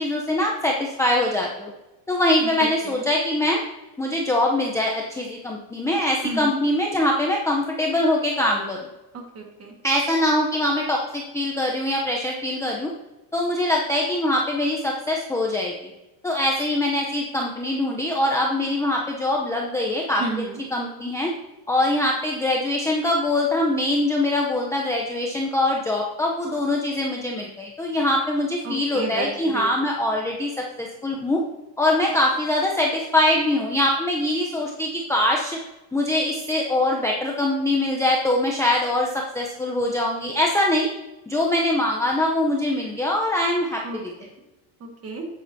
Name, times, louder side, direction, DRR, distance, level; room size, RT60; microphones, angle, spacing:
voice 1, 0.0-1.7 2.1-3.6 4.0-8.8 9.8-12.9 13.3-15.9 16.2-20.4 20.7-21.3 21.7-31.4 31.8-35.6 35.9-40.9 41.3-44.1, left 1 dB, 5° left, -1 dB, 0.6 m, -23 dB
voice 2, 6.2-6.6 9.1-9.7 20.2-20.6 28.6-29.7 43.8-44.0 44.8-45.2, right 3 dB, 30° right, 3 dB, 1.7 m, -32 dB
9.0 x 8.5 x 2.7 m, 1.0 s
cardioid pair, 135°, 49 cm